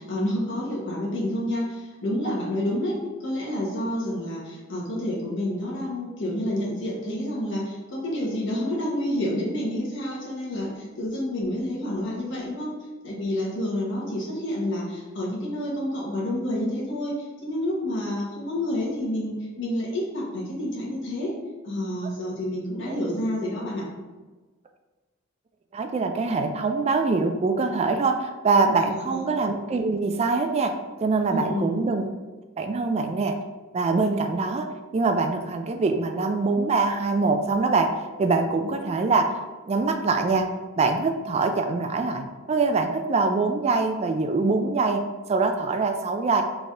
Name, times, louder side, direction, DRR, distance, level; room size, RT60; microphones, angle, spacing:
voice 1, 0.0-12.7 13.0-21.3 21.6-23.9 28.7-29.2 31.3-31.7, left 1 dB, 65° left, -4 dB, 1.3 m, -29 dB
voice 2, 25.7-30.7 31.0-32.1 32.6-33.4 33.7-37.9 38.2-39.4 39.7-40.5 40.8-46.4, right 3 dB, 30° right, 5 dB, 0.3 m, -24 dB
4.0 x 3.5 x 3.7 m, 1.2 s
head